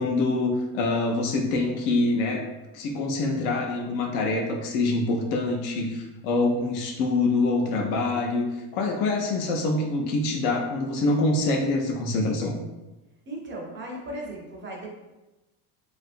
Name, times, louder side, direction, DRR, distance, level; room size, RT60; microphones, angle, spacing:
voice 1, 0.0-2.4 2.7-8.5 8.7-12.5, left 2 dB, 85° left, 2 dB, 0.7 m, -25 dB
voice 2, 13.3-14.9, right 1 dB, 25° right, -2 dB, 0.4 m, -36 dB
2.8 x 2.4 x 2.4 m, 1.0 s
cardioid pair, 125°, 47 cm